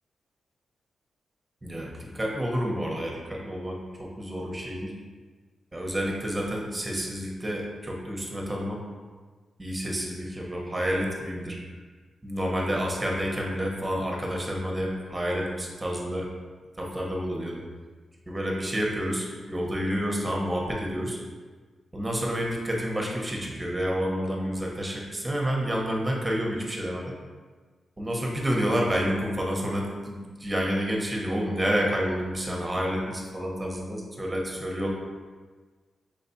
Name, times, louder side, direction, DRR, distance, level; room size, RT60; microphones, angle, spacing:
voice 1, 1.6-4.9 5.7-8.8 9.6-11.6 12.2-16.3 16.8-17.6 18.3-21.2 21.9-27.1 28.0-34.9, equal, 20° right, -1 dB, 1.0 m, -29 dB
4.9 x 3.2 x 2.7 m, 1.4 s
cardioid pair, 65°, 0 cm